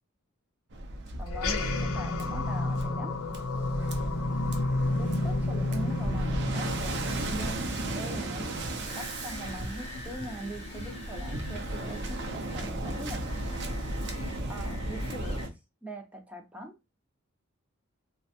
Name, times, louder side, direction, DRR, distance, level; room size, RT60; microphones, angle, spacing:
Waves surf, 0.7-15.5, right 1 dB, 55° right, 0.6 m, -35 dB
voice 1, 1.2-3.2 5.0-7.7 7.9-8.5 8.9-13.5 14.5-15.4 15.8-16.8, right 1 dB, 5° right, 0.6 m, -42 dB
sound 1, 1.3-8.0, left 2 dB, 85° left, 0.5 m, -31 dB
sound 2, 8.9-15.5, left 2 dB, 30° left, 0.8 m, -45 dB
3.3 x 2.2 x 2.7 m
head